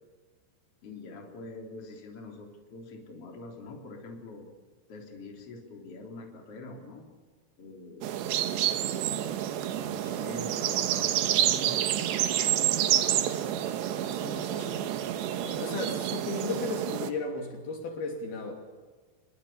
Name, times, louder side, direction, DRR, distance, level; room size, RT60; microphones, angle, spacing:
voice 1, 0.8-4.5 4.9-7.1 7.6-8.1 9.7-12.3, left 2 dB, 35° left, 1 dB, 4.3 m, -44 dB
sound 1, 8.0-17.1, right 11 dB, 90° right, 3.5 m, -28 dB
voice 2, 14.1-14.9 15.4-18.5, left 3 dB, 65° left, 3 dB, 4.7 m, -35 dB
27.0 x 22.0 x 8.6 m, 1.4 s
omnidirectional pair, 4.8 m